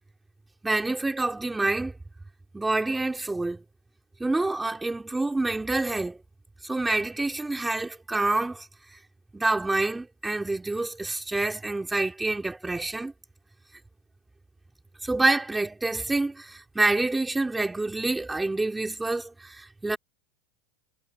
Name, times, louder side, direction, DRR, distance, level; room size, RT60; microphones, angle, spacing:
voice 1, 0.6-1.9 2.5-3.6 4.2-6.2 6.6-8.7 9.3-13.1 15.0-20.0, right 2 dB, 10° right, 5.2 m, -27 dB
supercardioid pair, 120°, 0 cm